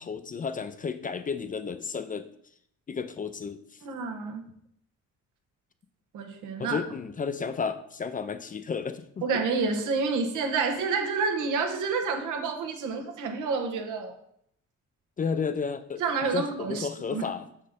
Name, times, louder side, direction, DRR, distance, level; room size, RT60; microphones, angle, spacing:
voice 1, 0.0-2.3 2.9-3.6 6.6-9.3 15.2-17.5, left 5 dB, 30° left, 11 dB, 0.4 m, -32 dB
voice 2, 3.8-4.5 6.1-6.8 9.2-14.1 16.0-17.3, right 4 dB, 85° right, 4 dB, 1.1 m, -29 dB
5.5 x 4.3 x 5.0 m, 0.71 s
cardioid pair, 90°, 30 cm